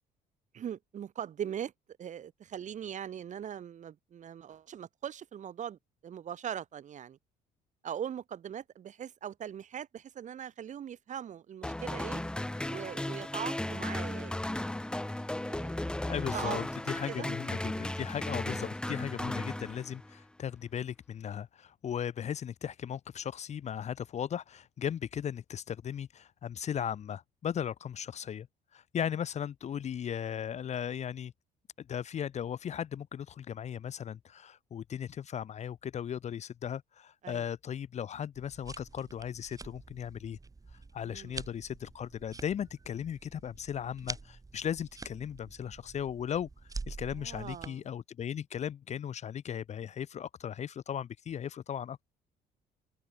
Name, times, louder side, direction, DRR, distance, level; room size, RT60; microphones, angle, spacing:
voice 1, 0.5-1.7 2.0-7.2 7.8-12.2 12.7-14.4 15.4-15.9 16.3-16.6 17.1-17.3 18.5-18.6 37.2-37.4 41.0-41.4 47.2-47.8, right 9 dB, 45° right, 1.3 m, -41 dB
sound 1, 11.6-20.2, left 1 dB, 5° left, 0.6 m, -35 dB
voice 2, 16.1-28.5 28.7-31.3 31.8-40.4 40.9-46.5 46.9-52.0, left 9 dB, 40° left, 0.8 m, -37 dB
sound 2, 38.3-47.7, right 3 dB, 20° right, 6.5 m, -46 dB
open air
cardioid pair, 110°, 17 cm